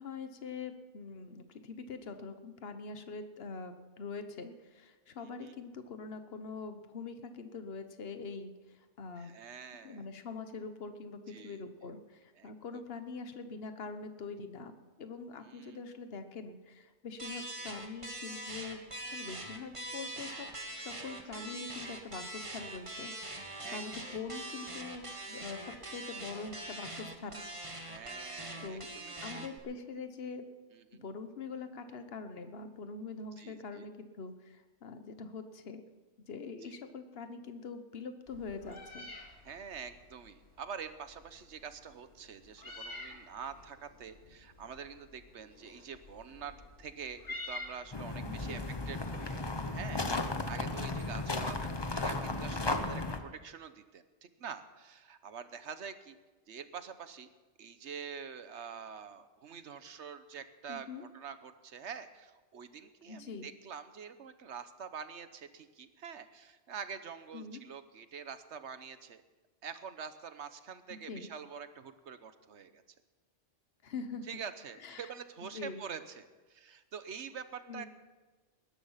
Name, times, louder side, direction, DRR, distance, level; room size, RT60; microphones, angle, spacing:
voice 1, 0.0-9.3 9.8-18.8 19.1-20.5 20.8-27.4 28.6-28.9 29.2-30.4 31.0-35.8 36.3-39.1 48.2-48.7 51.0-51.5 60.7-61.0 63.1-63.5 67.3-67.6 70.9-71.3 73.8-74.3 74.8-75.1 75.5-75.8 77.7-77.9, left 4 dB, 60° left, 8 dB, 1.3 m, -44 dB
voice 2, 5.2-5.5 9.2-10.0 11.3-11.6 12.4-12.5 15.5-15.8 17.4-17.5 21.3-21.7 23.6-23.8 27.8-29.5 30.7-31.1 33.4-33.8 36.6-36.7 39.4-48.6 48.9-49.4 49.7-56.2 56.5-57.3 57.6-69.2 69.6-72.8 74.3-77.9, right 7 dB, 75° right, 11 dB, 1.2 m, -46 dB
sound 1, 17.2-29.6, right 1 dB, 25° right, 1.6 m, -43 dB
Meow, 38.3-48.4, left 2 dB, 80° left, 2.8 m, -49 dB
sound 2, 47.9-53.2, left 2 dB, 25° left, 0.9 m, -35 dB
20.0 x 11.0 x 5.7 m, 1.3 s
omnidirectional pair, 1.2 m